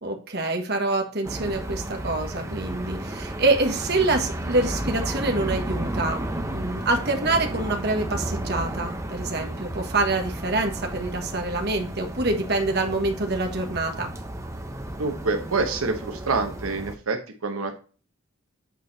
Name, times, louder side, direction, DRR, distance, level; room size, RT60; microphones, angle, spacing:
voice 1, 0.0-14.1, right 2 dB, 50° right, 4 dB, 1.3 m, -26 dB
sound 1, 1.2-17.0, right 1 dB, 15° right, 0.8 m, -33 dB
voice 2, 15.0-17.7, right 3 dB, 85° right, 5 dB, 1.0 m, -27 dB
8.3 x 4.4 x 4.0 m, 0.37 s
head